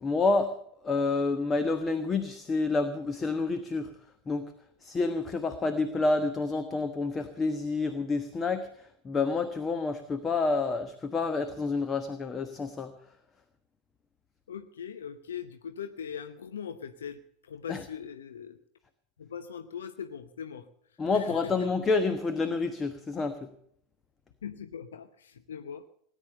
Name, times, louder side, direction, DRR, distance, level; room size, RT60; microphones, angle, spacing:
voice 1, 0.0-0.6 0.8-3.9 4.3-4.5 4.8-12.9 17.7-17.8 21.0-23.5, left 3 dB, 20° left, 9 dB, 1.2 m, -29 dB
voice 2, 14.5-18.6 19.2-20.7 21.1-21.7 24.4-25.8, left 7 dB, 70° left, 10 dB, 0.8 m, -40 dB
18.0 x 10.0 x 6.7 m, 0.68 s
figure-of-eight pair, 85°, 0 cm